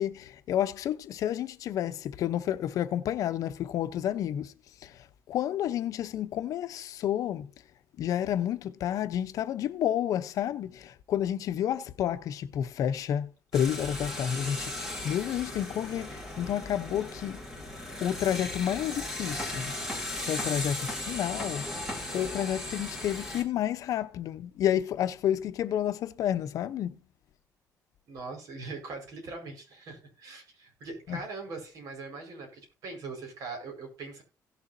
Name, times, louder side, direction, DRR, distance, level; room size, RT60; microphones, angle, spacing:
voice 1, 0.0-4.5 4.8-7.5 8.0-17.4 18.0-19.7 20.2-21.7 22.1-27.0 31.1-31.2, left 10 dB, 60° left, 0.8 m, -30 dB
sound 1, 13.5-23.4, left 1 dB, 10° right, 2.9 m, -37 dB
voice 2, 28.1-34.2, right 3 dB, 65° right, 5.0 m, -41 dB
17.0 x 7.0 x 2.7 m
cardioid pair, 165°, 6 cm